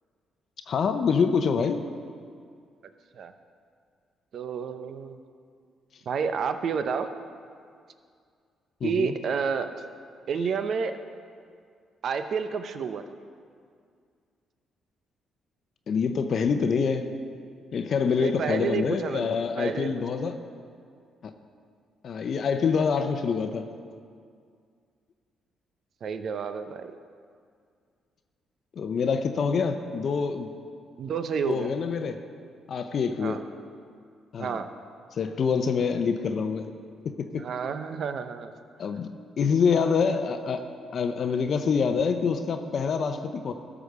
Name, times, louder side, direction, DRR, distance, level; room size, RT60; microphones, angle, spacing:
voice 1, 0.7-1.8 8.8-9.1 15.9-17.1 17.7-20.3 21.2-21.3 22.0-23.7 28.8-30.5 31.5-32.2 32.7-33.4 34.3-34.6 35.1-36.7 37.0-37.4 38.8-39.1 39.4-43.5, left 5 dB, 55° left, 7 dB, 0.6 m, -26 dB
voice 2, 4.3-5.2 6.1-7.1 8.8-9.7 10.3-11.0 12.0-13.0 18.2-20.0 26.0-26.9 31.0-31.7 33.2-33.4 34.4-34.7 37.4-38.5, right 6 dB, 60° right, 9 dB, 0.7 m, -30 dB
13.5 x 5.0 x 6.6 m, 2.2 s
cardioid pair, 90°, 0 cm